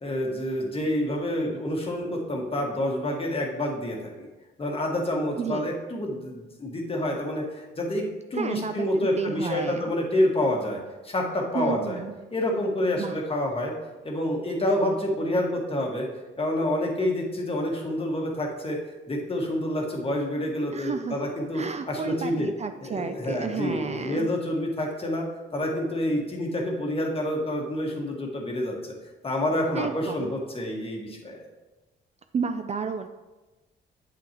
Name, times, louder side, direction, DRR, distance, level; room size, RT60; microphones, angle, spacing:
voice 1, 0.0-4.3 4.6-8.0 8.3-12.0 12.3-13.7 14.0-16.1 16.4-18.8 19.1-22.5 22.8-25.3 25.5-28.8 29.2-31.5, left 1 dB, 30° left, -1 dB, 1.8 m, -28 dB
voice 2, 5.4-5.7 8.3-9.9 11.5-12.1 13.0-13.1 20.7-21.2 21.5-24.3 29.7-30.3 32.3-33.1, right 6 dB, 35° right, 8 dB, 0.4 m, -32 dB
8.7 x 7.6 x 3.0 m, 1.1 s
cardioid pair, 90°, 20 cm